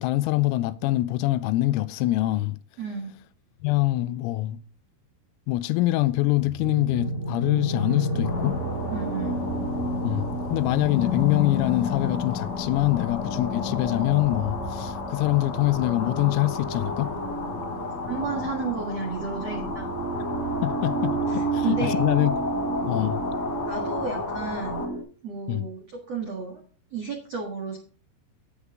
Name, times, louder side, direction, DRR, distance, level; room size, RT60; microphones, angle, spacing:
voice 1, 0.0-2.6 3.6-4.6 5.5-8.6 10.0-17.1 20.2-20.3 20.6-22.3 22.9-23.2 25.5-25.7, left 17 dB, 85° left, 3.3 m, -24 dB
voice 2, 2.8-3.1 8.9-9.4 17.8-19.9 21.3-22.0 23.7-24.8 25.2-26.6 26.9-27.8, right 5 dB, 80° right, 1.4 m, -32 dB
sound 1, 6.4-25.0, equal, 35° right, 1.8 m, -31 dB
sound 2, 8.2-24.9, left 3 dB, 45° left, 2.5 m, -33 dB
9.9 x 9.7 x 3.6 m
omnidirectional pair, 6.0 m